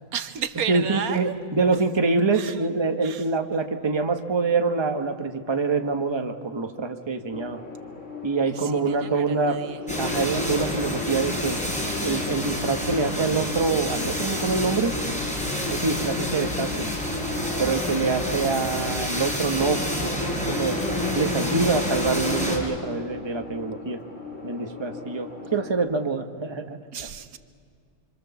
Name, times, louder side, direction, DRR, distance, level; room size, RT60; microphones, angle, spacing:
voice 1, 0.1-1.3 2.3-2.7 3.0-3.2 3.5-3.7 8.5-9.8 25.4-25.5 26.9-27.4, right 8 dB, 80° right, 10 dB, 1.4 m, -33 dB
voice 2, 0.7-7.6 8.2-9.6 10.0-11.6 12.0-14.9 15.7-16.9 17.6-20.8 21.1-24.0 24.4-26.8, right 4 dB, 20° right, 5 dB, 1.1 m, -25 dB
sound 1, 7.3-25.7, left 6 dB, 55° left, 3.0 m, -38 dB
sound 2, 9.9-22.6, left 1 dB, 5° left, 4.4 m, -28 dB
26.0 x 25.5 x 7.1 m, 2.2 s
omnidirectional pair, 1.5 m